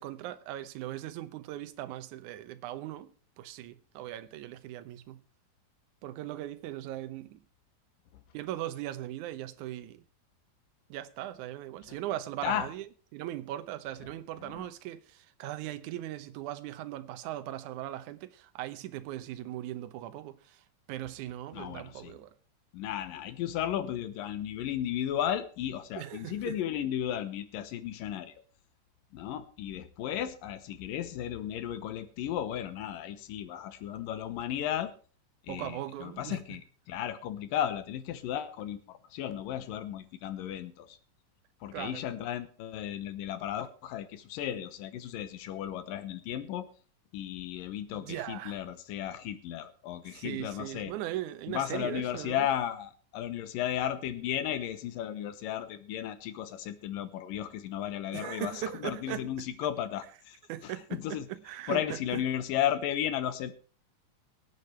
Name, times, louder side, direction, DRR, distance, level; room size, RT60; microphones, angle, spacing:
voice 1, 0.0-3.1 3.4-5.2 6.0-7.4 8.3-10.0 10.9-12.9 13.1-22.3 26.0-26.6 35.5-36.4 41.7-42.1 47.9-48.6 50.1-52.5 58.1-59.3 60.5-62.2, right 13 dB, 75° right, 2.1 m, -39 dB
voice 2, 21.5-22.1 22.7-28.3 29.1-34.9 35.4-41.0 41.6-46.7 47.1-50.9 51.5-60.4 60.6-61.3 61.7-63.6, left 10 dB, 90° left, 2.8 m, -34 dB
23.0 x 8.3 x 3.3 m
omnidirectional pair, 3.8 m